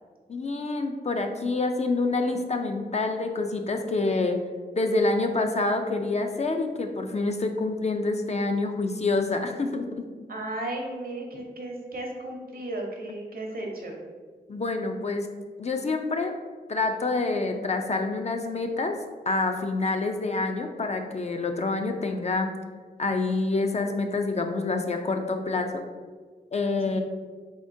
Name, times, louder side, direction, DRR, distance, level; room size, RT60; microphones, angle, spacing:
voice 1, 0.3-4.4 4.7-10.0 14.5-15.3 15.6-16.3 16.7-18.9 19.3-22.5 23.0-25.8 26.5-27.0, left 3 dB, 40° left, 4 dB, 0.4 m, -27 dB
voice 2, 10.3-14.0 26.8-27.0, right 1 dB, 60° right, 0 dB, 0.8 m, -35 dB
3.6 x 3.5 x 2.6 m, 1.5 s
wide cardioid pair, 80°, 18 cm